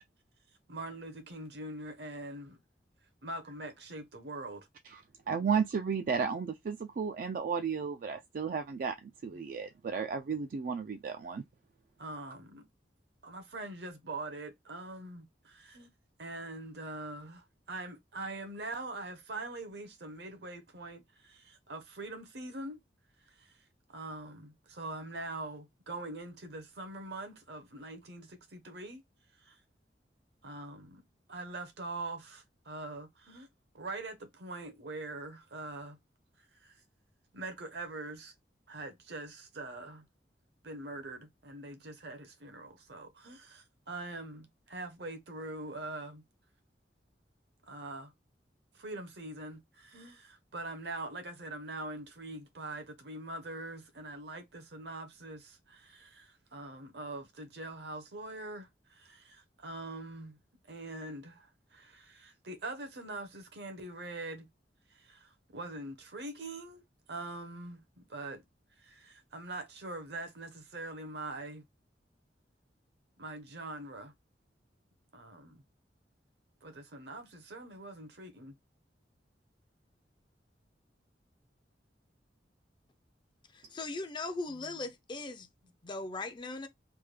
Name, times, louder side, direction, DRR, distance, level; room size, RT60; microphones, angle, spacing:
voice 1, 0.7-2.6 3.2-4.7 9.3-9.5 12.0-12.6 13.2-15.9 16.2-22.8 23.4-23.6 23.9-29.0 29.4-29.6 30.4-31.0 31.3-33.5 33.7-36.0 36.6-36.8 37.3-38.3 38.7-40.1 40.6-46.2 47.7-48.1 48.7-60.4 60.7-64.5 64.9-66.8 67.1-68.4 68.8-71.6 73.2-74.1 75.1-75.6 76.6-78.5 84.5-84.8, right 2 dB, 65° right, 0.9 m, -43 dB
voice 2, 5.3-11.4, right 6 dB, 50° right, 0.3 m, -33 dB
voice 3, 83.5-85.5 85.8-86.7, left 3 dB, 25° left, 0.4 m, -39 dB
3.4 x 2.2 x 3.2 m
head